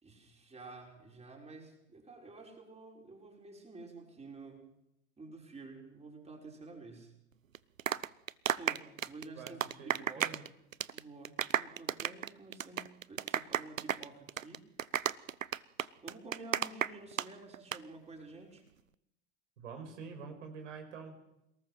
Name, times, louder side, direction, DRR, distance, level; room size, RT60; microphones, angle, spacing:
voice 1, 0.0-4.6 5.2-7.1 8.5-9.6 10.0-10.5 10.9-14.7 16.0-18.6, right 3 dB, 15° right, 1 dB, 5.9 m, -50 dB
sound 1, 7.5-10.5 10.7-11.0 11.3-17.3 17.5-17.8, right 9 dB, 85° right, 0.7 m, -33 dB
voice 2, 9.4-10.4 19.6-21.1, right 5 dB, 65° right, 5 dB, 5.6 m, -46 dB
27.5 x 19.0 x 6.0 m, 0.86 s
figure-of-eight pair, 80°, 39 cm